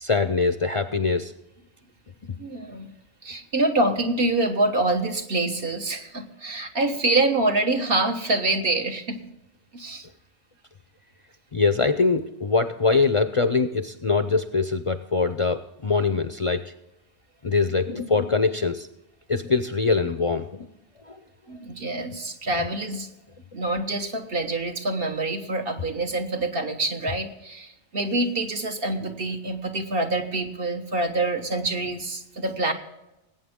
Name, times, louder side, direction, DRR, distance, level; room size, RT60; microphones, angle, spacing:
voice 1, 0.0-1.3 11.5-16.7 17.4-18.9 19.3-20.5 21.1-21.2 21.5-21.6, left 4 dB, 40° left, 9 dB, 0.5 m, -23 dB
voice 2, 2.4-2.9 3.2-9.2 9.7-10.1 21.5-23.1 23.5-32.7, right 2 dB, 60° right, 4 dB, 1.5 m, -26 dB
20.0 x 8.9 x 3.6 m, 0.93 s
omnidirectional pair, 1.1 m